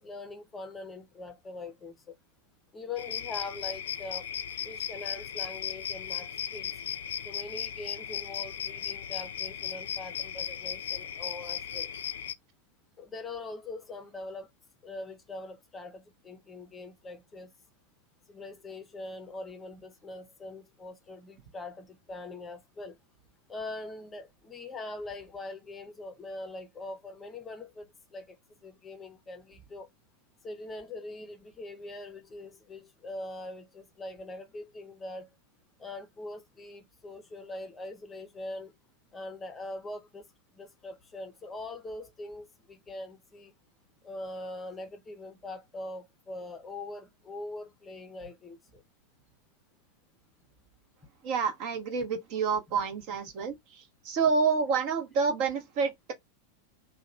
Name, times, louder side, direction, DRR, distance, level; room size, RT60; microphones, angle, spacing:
voice 1, 0.0-2.1 2.7-4.3 4.6-6.7 7.2-11.9 13.0-14.5 14.8-17.5 18.3-22.9 23.5-27.9 28.1-28.4 28.6-29.9 30.4-35.3 35.8-38.7 39.1-40.3 40.5-43.5 44.0-48.8, left 2 dB, 15° left, 0.6 m, -42 dB
sound 1, 3.0-12.3, left 9 dB, 60° left, 0.3 m, -36 dB
voice 2, 51.2-53.6 54.0-56.1, right 5 dB, 45° right, 0.8 m, -28 dB
2.8 x 2.1 x 2.6 m
figure-of-eight pair, 90°, 0 cm